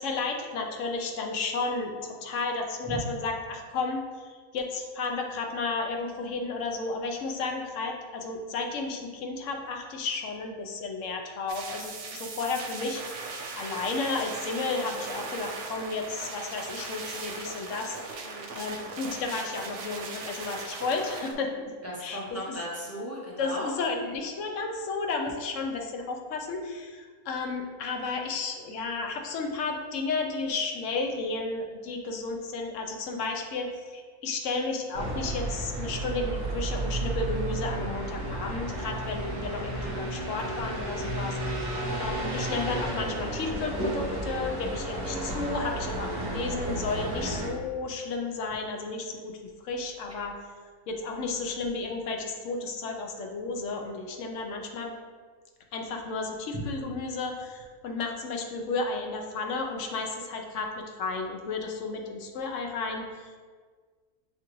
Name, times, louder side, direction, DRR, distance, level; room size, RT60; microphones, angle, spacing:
voice 1, 0.0-13.3 13.5-18.3 18.5-21.7 22.0-22.2 22.5-22.6 23.4-49.3 49.6-50.4 50.9-54.9 55.7-63.3, left 3 dB, 65° left, 2 dB, 0.9 m, -33 dB
sound 1, 11.5-21.3, right 4 dB, 80° right, 1.1 m, -39 dB
voice 2, 21.8-23.7 39.7-40.0, equal, 25° right, -6 dB, 0.3 m, -37 dB
sound 2, 34.9-47.5, right 2 dB, 40° right, 1.0 m, -32 dB
6.7 x 2.4 x 3.0 m, 1.5 s
omnidirectional pair, 1.6 m